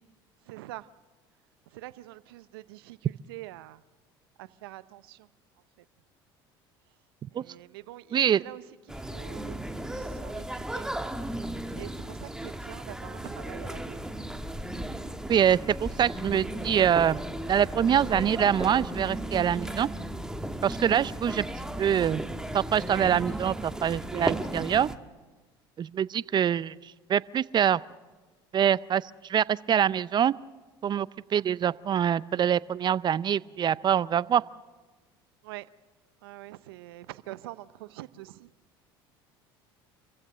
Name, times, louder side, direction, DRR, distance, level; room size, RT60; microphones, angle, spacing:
voice 1, 0.5-0.9 1.7-3.8 4.4-5.3 7.3-9.6 9.9-10.9 11.7-14.1 35.4-35.7 36.2-38.5, right 17 dB, 80° right, 0.7 m, -45 dB
voice 2, 8.1-8.4 15.3-17.2 17.5-19.9 20.6-21.5 21.8-22.2 22.5-24.9 25.8-26.7 27.1-27.8 28.5-29.0 29.3-30.3 30.8-34.4, right 9 dB, 35° right, 0.5 m, -24 dB
sound 1, 8.9-25.0, right 1 dB, 5° right, 1.3 m, -35 dB
sound 2, 9.8-24.0, left 2 dB, 30° left, 5.9 m, -49 dB
27.0 x 15.5 x 6.6 m
hypercardioid pair, 75°, 12 cm